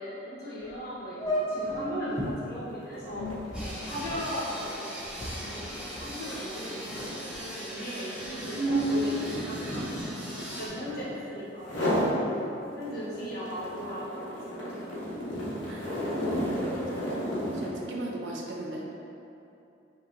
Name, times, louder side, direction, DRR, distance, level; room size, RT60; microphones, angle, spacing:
voice 1, 0.0-3.3 3.6-5.6 5.9-9.1 9.4-9.8 10.5-11.7 12.8-14.7, equal, 50° left, -9 dB, 1.2 m, -38 dB
Squeaky drawer, 0.6-0.7 1.2-2.3 3.0-6.5 6.8-7.4 8.0-10.0, equal, 15° left, 0.6 m, -33 dB
sound 1, 2.2-2.4 2.7-11.2 11.6-12.2 12.6-17.8, equal, 85° left, 0.9 m, -34 dB
sound 2, 3.5-10.7, equal, 5° right, 1.4 m, -40 dB
voice 2, 16.2-19.0, right 1 dB, 70° right, -2 dB, 0.6 m, -37 dB
5.4 x 2.9 x 2.5 m, 2.8 s
head